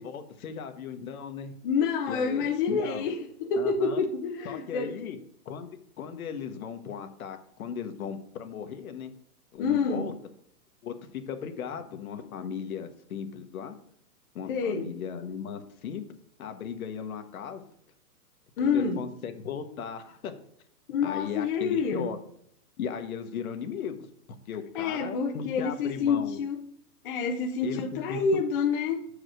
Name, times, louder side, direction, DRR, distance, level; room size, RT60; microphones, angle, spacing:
voice 1, 0.0-1.5 2.1-3.1 3.6-4.0 4.4-5.2 5.4-9.1 9.5-10.1 10.8-10.9 11.3-13.8 14.3-16.0 16.4-17.6 18.6-20.3 21.0-22.2 22.8-24.1 24.5-26.4 27.6-27.8 28.1-28.2, left 7 dB, 65° left, 1.2 m, -37 dB
voice 2, 1.6-5.0 9.6-10.1 14.5-15.0 18.6-19.1 20.9-22.1 24.7-26.7 27.0-29.1, left 5 dB, 35° left, 0.7 m, -28 dB
6.3 x 5.0 x 6.3 m
hypercardioid pair, 155°, 46 cm